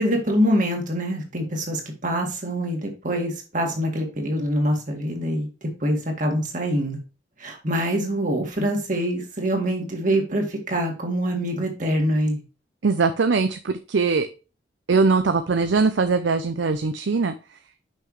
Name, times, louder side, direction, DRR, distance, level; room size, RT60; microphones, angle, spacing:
voice 1, 0.0-7.0 7.4-12.4, equal, 45° right, 2.0 m, -25 dB
voice 2, 12.8-14.3 14.9-17.3, right 4 dB, 75° right, 0.5 m, -21 dB
6.4 x 5.7 x 3.1 m
head